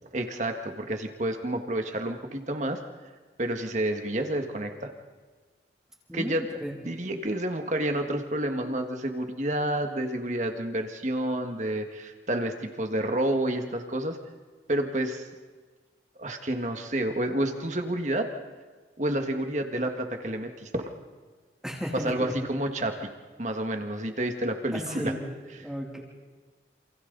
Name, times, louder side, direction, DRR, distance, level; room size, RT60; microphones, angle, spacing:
voice 1, 0.0-2.8 3.4-4.9 6.1-6.5 6.8-14.2 14.7-15.3 16.2-18.3 19.0-20.9 21.9-23.1 23.4-25.1, right 1 dB, 40° right, 5 dB, 1.8 m, -29 dB
voice 2, 6.1-6.7 21.6-22.3 24.7-25.3 25.6-26.0, equal, 5° right, -2 dB, 3.1 m, -34 dB
28.0 x 27.5 x 4.1 m, 1.4 s
head